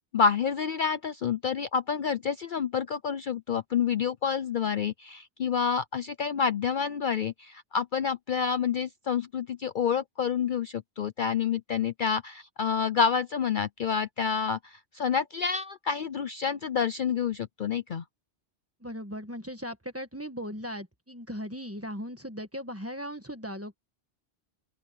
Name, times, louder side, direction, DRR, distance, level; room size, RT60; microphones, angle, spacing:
voice 1, 0.1-18.0, left 6 dB, 50° left, 0.7 m, -28 dB
voice 2, 18.8-23.8, equal, 10° right, 1.4 m, -38 dB
open air
omnidirectional pair, 1.2 m